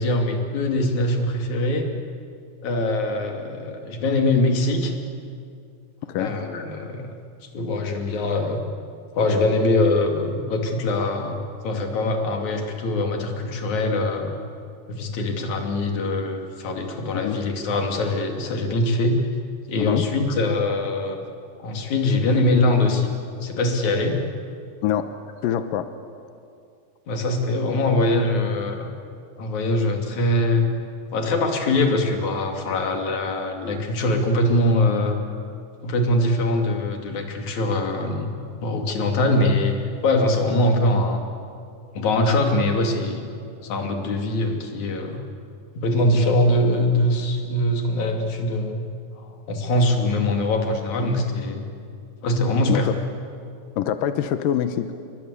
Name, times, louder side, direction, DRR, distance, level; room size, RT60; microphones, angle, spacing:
voice 1, 0.0-1.9 2.6-4.9 6.2-7.2 7.5-8.6 9.1-11.4 11.6-14.3 14.9-19.2 19.7-21.2 21.6-23.1 23.4-24.2 27.1-28.9 29.4-30.7 31.1-35.2 35.8-38.3 38.6-39.8 40.0-41.2 42.0-45.2 45.8-48.9 49.2-51.7 52.2-52.9, left 1 dB, 55° left, 3 dB, 3.9 m, -22 dB
voice 2, 19.8-20.1 24.8-25.2 25.4-25.9 52.7-53.0 53.8-54.9, left 10 dB, 75° left, 10 dB, 2.5 m, -24 dB
30.0 x 23.5 x 8.3 m, 2.4 s
omnidirectional pair, 4.2 m